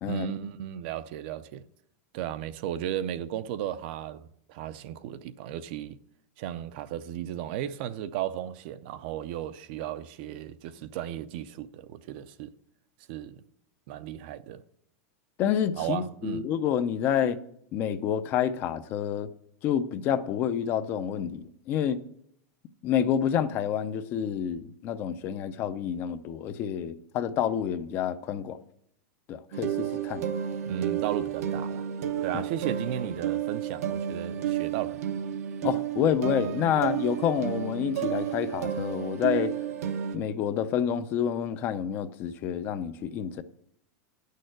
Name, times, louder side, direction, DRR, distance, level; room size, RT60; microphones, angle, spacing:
voice 1, 0.0-1.6 2.1-4.2 4.5-6.0 6.4-12.5 13.1-13.4 13.9-14.6 15.7-16.4 30.7-31.9 32.2-35.0, right 11 dB, 45° right, 0.5 m, -35 dB
voice 2, 15.4-17.4 17.7-19.3 19.6-22.0 22.8-28.6 29.3-30.2 32.3-32.4 35.6-39.5 40.1-43.4, left 9 dB, 25° left, 0.4 m, -28 dB
sound 1, 29.5-40.2, right 9 dB, 85° right, 0.9 m, -31 dB
9.3 x 6.5 x 7.8 m
supercardioid pair, 175°, 8 cm